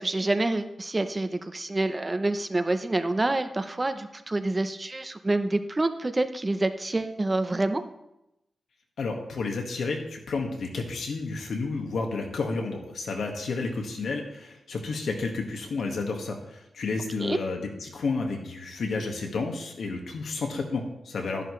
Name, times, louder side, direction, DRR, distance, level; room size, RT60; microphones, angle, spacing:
voice 1, 0.0-7.8 17.2-17.4, right 2 dB, 25° right, 9 dB, 0.8 m, -27 dB
voice 2, 9.0-21.5, left 3 dB, 80° left, 2 dB, 1.8 m, -31 dB
13.0 x 11.0 x 3.2 m, 0.87 s
cardioid pair, 85°, 0 cm